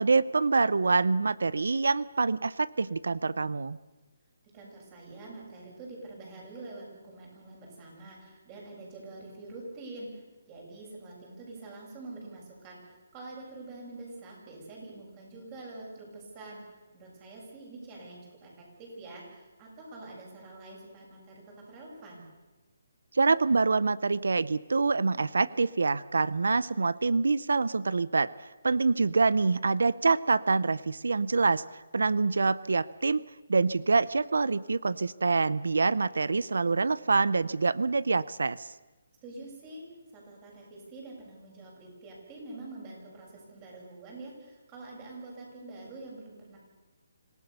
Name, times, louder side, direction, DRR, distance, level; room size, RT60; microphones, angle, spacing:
voice 1, 0.0-3.8 23.1-28.3 28.6-31.6 31.9-33.2 33.5-38.7, right 4 dB, 85° right, 20 dB, 0.6 m, -26 dB
voice 2, 4.5-22.3 39.2-39.9 40.1-46.6, right 2 dB, 25° right, -2 dB, 7.6 m, -46 dB
26.0 x 17.0 x 6.8 m, 1.2 s
hypercardioid pair, 160°, 0 cm